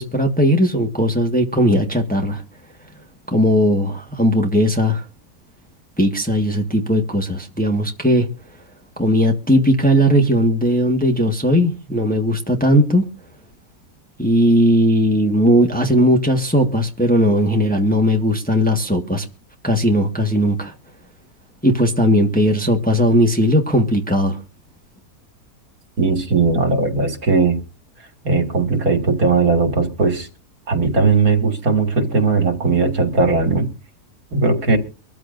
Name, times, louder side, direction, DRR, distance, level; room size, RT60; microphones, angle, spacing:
voice 1, 0.0-2.4 3.3-5.0 6.0-8.3 9.0-13.1 14.2-19.2 19.6-20.7 21.6-24.4, equal, 5° left, 1.5 m, -17 dB
voice 2, 26.0-27.6 28.2-30.3 30.7-33.7 34.3-34.8, right 4 dB, 65° right, 2.8 m, -18 dB
23.5 x 14.0 x 2.6 m
omnidirectional pair, 1.6 m